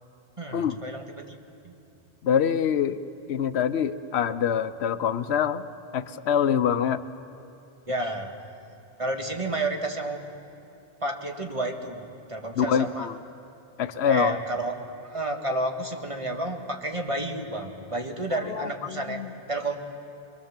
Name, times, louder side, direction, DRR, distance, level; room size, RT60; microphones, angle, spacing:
voice 1, 0.4-1.4 1.6-1.7 7.9-8.3 9.0-10.2 11.0-13.1 14.0-19.2 19.5-19.8, right 2 dB, 30° right, 3 dB, 1.7 m, -31 dB
voice 2, 2.2-3.0 3.3-5.6 5.9-7.0 12.6-13.1 13.8-14.3 18.5-19.3, left 8 dB, 90° left, 13 dB, 1.0 m, -25 dB
23.5 x 23.0 x 7.3 m, 2.8 s
omnidirectional pair, 1.1 m